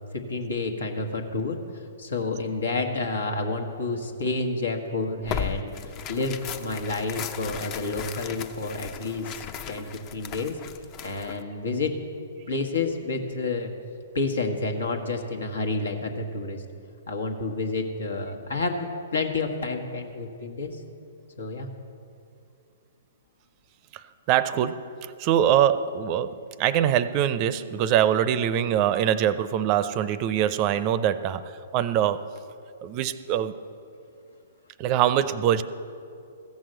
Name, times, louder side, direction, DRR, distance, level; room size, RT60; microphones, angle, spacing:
voice 1, 0.1-5.7 6.1-10.6 11.0-12.0 12.5-13.7 14.1-16.6 17.1-20.8 21.4-21.7, left 3 dB, 80° left, 4 dB, 1.4 m, -29 dB
Tearing, 5.2-11.4, left 8 dB, 35° left, 0.6 m, -36 dB
voice 2, 24.3-31.4 31.7-32.3 32.8-33.6 34.8-35.6, right 10 dB, 40° right, 14 dB, 0.5 m, -23 dB
14.5 x 6.2 x 7.7 m, 2.6 s
hypercardioid pair, 125°, 0 cm